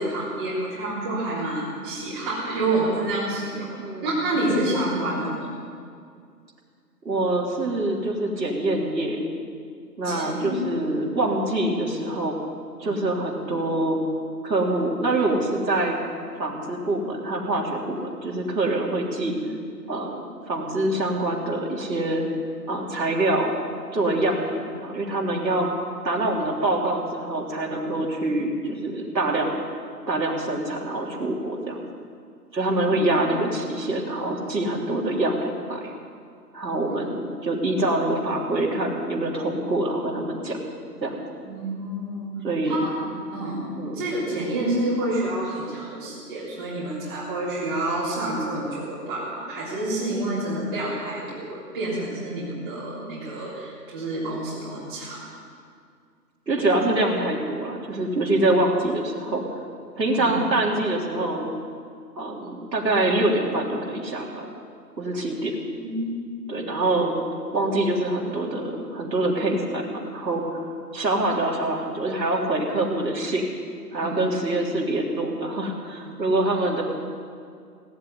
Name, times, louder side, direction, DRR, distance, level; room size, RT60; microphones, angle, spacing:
voice 1, 0.0-3.7 4.0-5.5 10.0-11.0 12.8-13.0 19.1-19.5 32.6-33.2 41.4-42.3 42.6-43.6 43.9-55.2 60.1-60.3 65.8-66.1 74.0-74.2 76.0-76.1, right 1 dB, 15° right, -9 dB, 3.4 m, -28 dB
voice 2, 3.8-4.1 7.1-9.2 10.0-12.4 12.8-14.0 14.4-16.0 16.3-19.3 19.9-22.3 22.7-23.5 23.9-25.7 26.0-29.6 30.1-31.8 32.5-35.9 36.5-40.6 41.0-41.2 42.4-42.8 43.8-44.0 56.5-59.4 59.9-61.5 62.2-64.5 65.0-65.6 66.5-67.1 67.5-70.7 70.9-73.5 73.9-76.8, right 2 dB, 85° right, -2 dB, 3.6 m, -25 dB
18.0 x 8.0 x 9.5 m, 2.2 s
hypercardioid pair, 170°, 50 cm